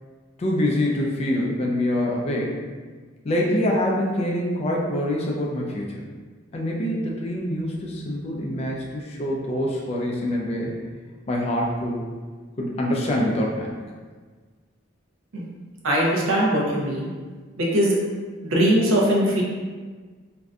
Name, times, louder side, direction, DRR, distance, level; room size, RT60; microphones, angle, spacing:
voice 1, 0.4-2.6 3.2-6.0 6.5-10.7 11.3-12.0 12.6-13.8, left 1 dB, 30° left, -2 dB, 0.3 m, -25 dB
voice 2, 15.8-17.1 17.6-18.0 18.4-19.4, equal, 80° right, -3 dB, 0.5 m, -21 dB
2.5 x 2.1 x 2.4 m, 1.5 s
head